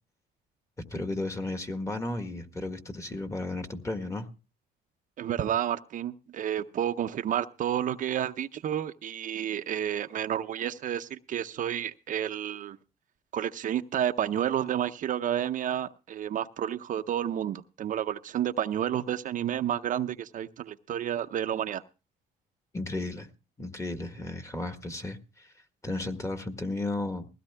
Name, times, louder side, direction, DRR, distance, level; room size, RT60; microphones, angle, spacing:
voice 1, 0.8-4.3 22.7-23.3 23.6-25.5 25.8-27.3, left 2 dB, 15° left, 7 dB, 1.6 m, -34 dB
voice 2, 5.2-12.8 13.3-21.8, right 10 dB, 50° right, 8 dB, 0.7 m, -30 dB
20.5 x 16.0 x 2.2 m, 0.31 s
cardioid pair, 110°, 17 cm